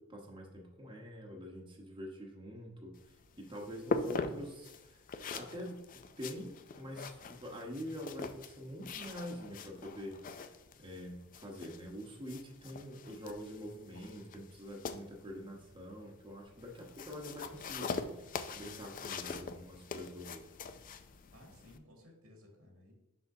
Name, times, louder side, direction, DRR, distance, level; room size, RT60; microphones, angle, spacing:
voice 1, 0.0-5.0 5.3-5.8 6.2-10.5 10.8-20.4, equal, 25° right, -1 dB, 0.9 m, -46 dB
sound 1, 2.9-21.8, left 4 dB, 40° left, 0.4 m, -43 dB
voice 2, 21.3-22.9, left 1 dB, 85° right, 0 dB, 1.9 m, -58 dB
6.1 x 5.7 x 2.7 m, 0.98 s
head